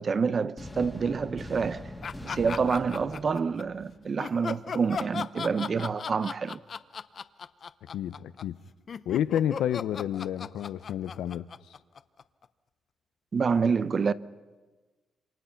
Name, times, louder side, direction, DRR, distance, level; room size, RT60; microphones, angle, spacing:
voice 1, 0.0-1.9 2.2-6.6 13.3-14.1, right 5 dB, 35° right, 0.7 m, -27 dB
sound 1, 0.6-4.5, left 1 dB, 5° left, 1.8 m, -43 dB
sound 2, 2.0-3.6 4.2-12.4, left 6 dB, 40° left, 0.7 m, -37 dB
voice 2, 7.9-8.6 9.1-11.5, left 10 dB, 80° left, 0.7 m, -30 dB
28.0 x 25.0 x 5.8 m
cardioid pair, 135°, 0 cm